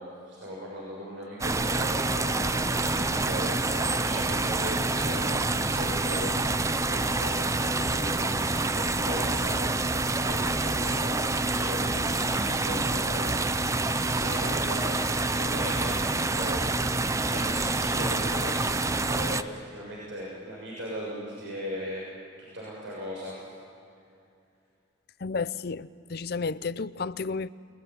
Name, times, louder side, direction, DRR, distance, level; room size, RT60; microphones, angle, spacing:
voice 1, 0.0-6.3 6.8-9.6 9.9-13.5 14.1-22.1 22.5-23.4, equal, 75° right, -5 dB, 6.8 m, -38 dB
sound 1, 1.4-19.4, right 2 dB, 15° right, 0.6 m, -27 dB
voice 2, 25.2-27.5, left 4 dB, 55° left, 16 dB, 0.6 m, -32 dB
29.0 x 20.5 x 9.6 m, 2.6 s
head